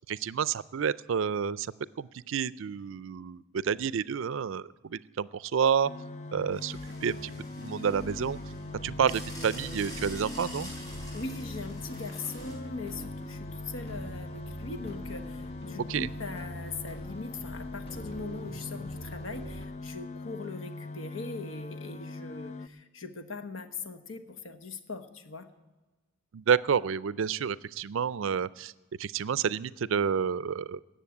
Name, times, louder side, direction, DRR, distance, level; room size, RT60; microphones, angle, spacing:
voice 1, 0.1-1.7 2.0-5.9 6.3-7.3 7.6-8.4 8.8-10.7 15.9-16.1 26.3-28.7 29.0-30.8, right 7 dB, 65° right, 19 dB, 0.4 m, -29 dB
sound 1, 5.8-22.7, left 3 dB, 35° left, 0.4 m, -41 dB
sound 2, 6.5-12.5, left 1 dB, 20° left, 4.5 m, -47 dB
sound 3, 6.7-19.7, right 1 dB, 55° left, 1.9 m, -45 dB
voice 2, 11.1-25.5, left 3 dB, 70° left, 8 dB, 1.2 m, -41 dB
17.5 x 7.3 x 8.5 m, 1.2 s
head